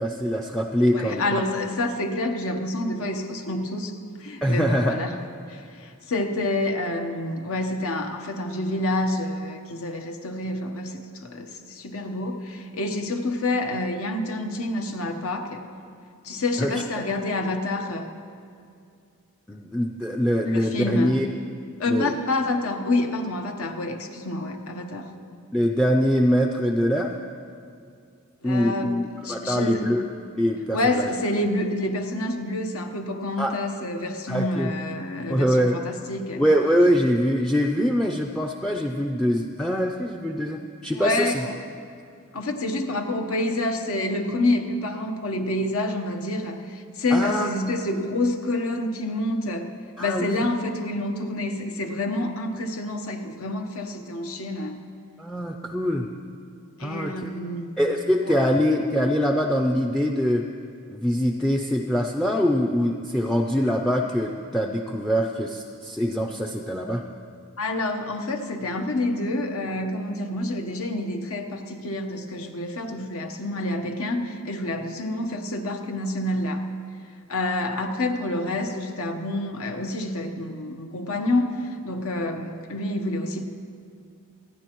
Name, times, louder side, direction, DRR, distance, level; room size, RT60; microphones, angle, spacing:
voice 1, 0.0-1.2 4.4-4.9 16.6-16.7 19.5-21.3 21.9-22.1 25.5-27.1 28.4-30.1 30.3-31.1 33.4-33.6 34.3-34.7 35.3-35.8 36.4-41.5 47.1-47.5 50.0-50.4 55.2-56.1 56.8-57.3 57.8-60.4 60.9-67.0, equal, ahead, 2 dB, 0.4 m, -23 dB
voice 2, 0.9-3.9 4.2-5.2 5.5-15.6 16.2-18.1 20.5-21.2 21.8-25.1 28.4-29.9 30.7-36.4 40.9-41.4 42.3-49.7 50.0-54.8 56.8-57.8 58.2-58.4 67.6-76.6 77.3-83.4, left 1 dB, 70° left, 5 dB, 1.1 m, -28 dB
27.5 x 9.8 x 3.0 m, 2.3 s
head